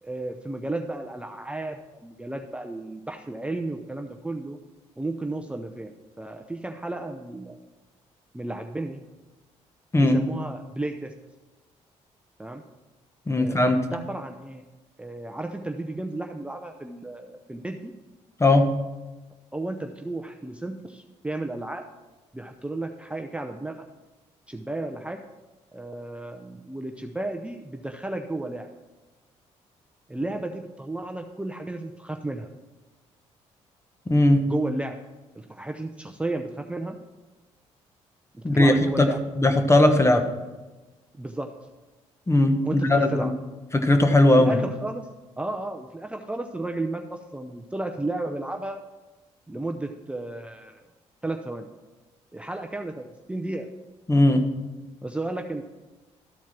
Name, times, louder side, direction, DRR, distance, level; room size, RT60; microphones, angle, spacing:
voice 1, 0.0-4.6 5.0-7.6 8.3-9.0 9.9-11.1 12.4-12.6 13.4-14.6 15.0-17.9 19.5-21.8 22.3-23.9 24.5-25.2 25.7-28.7 30.1-32.5 34.5-35.0 35.3-37.0 38.3-39.2 41.2-41.5 42.6-43.3 44.3-45.1 45.4-48.8 49.5-50.8 51.2-51.7 52.3-53.7 55.0-55.6, right 2 dB, 10° right, 4 dB, 0.7 m, -33 dB
voice 2, 13.3-13.8 18.4-18.7 34.1-34.5 38.4-39.1 39.4-40.2 42.3-43.3 43.7-44.6 54.1-54.4, left 1 dB, 20° left, 6 dB, 1.2 m, -18 dB
13.0 x 4.5 x 5.9 m, 1.2 s
supercardioid pair, 70°, 13 cm